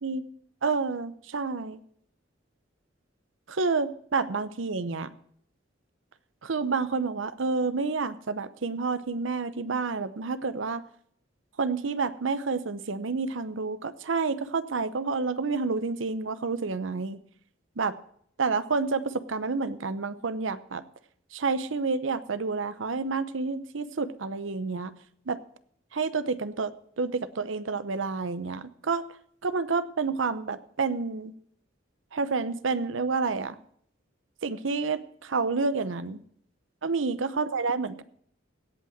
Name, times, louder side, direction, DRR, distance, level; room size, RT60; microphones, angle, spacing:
voice 1, 0.6-1.8 3.5-5.1 6.4-10.8 11.6-17.2 17.8-17.9 18.4-20.8 21.3-24.9 25.3-25.4 25.9-26.7 27.0-29.0 29.4-31.3 32.1-33.6 34.4-36.2 36.8-38.0, right 4 dB, 75° right, 14 dB, 0.8 m, -29 dB
17.0 x 5.7 x 7.2 m, 0.65 s
head